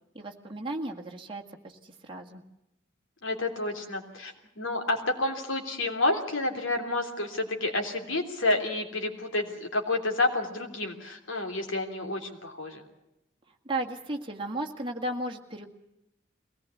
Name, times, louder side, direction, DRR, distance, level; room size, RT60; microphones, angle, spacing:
voice 1, 0.1-2.4 13.7-15.7, right 1 dB, 25° right, 1 dB, 1.8 m, -35 dB
voice 2, 3.2-12.8, left 2 dB, 80° left, 3 dB, 3.2 m, -29 dB
22.0 x 18.0 x 8.4 m, 0.90 s
head